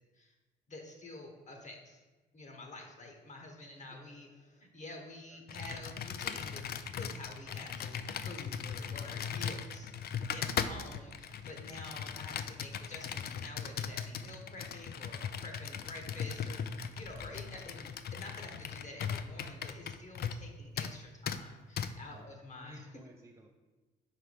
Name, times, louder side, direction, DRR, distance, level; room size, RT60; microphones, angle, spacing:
voice 1, 0.7-2.0 2.3-6.6 6.9-9.9 10.3-16.6 16.9-22.8, left 2 dB, 35° left, 3 dB, 1.3 m, -49 dB
voice 2, 3.7-4.3 5.3-5.4 22.0-23.5, right 2 dB, 15° right, 0 dB, 0.5 m, -58 dB
Computer keyboard, 5.5-20.5 20.8-20.9 21.3-21.4 21.8-21.9, left 7 dB, 50° left, 0.4 m, -39 dB
Gunshot gunfire / Fireworks / Boom, 17.0-21.8, left 1 dB, 85° left, 1.5 m, -60 dB
4.8 x 4.5 x 5.2 m, 1.2 s
cardioid pair, 90°, 20 cm